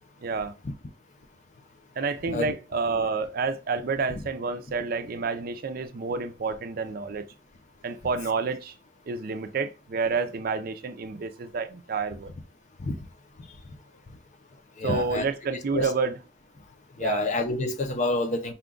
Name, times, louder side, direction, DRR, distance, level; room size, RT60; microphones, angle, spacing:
voice 1, 0.2-0.5 2.0-7.2 7.8-8.7 9.1-12.3 14.8-16.2 17.0-17.3, right 4 dB, 50° right, 0.5 m, -29 dB
voice 2, 14.8-15.2 15.7-15.9 17.0-18.5, left 2 dB, 40° left, 0.6 m, -27 dB
5.7 x 2.3 x 3.8 m
head